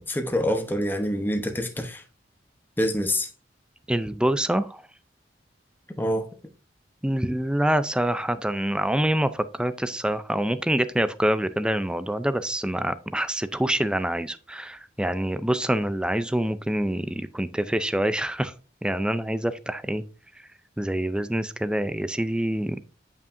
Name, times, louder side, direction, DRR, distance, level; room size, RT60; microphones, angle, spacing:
voice 1, 0.0-2.0 2.8-3.3 6.0-6.2, equal, 10° left, 0.9 m, -26 dB
voice 2, 3.9-4.8 7.0-18.5 18.8-20.0 20.4-20.5 20.8-22.8, right 1 dB, 5° right, 0.4 m, -26 dB
9.2 x 5.6 x 2.6 m
head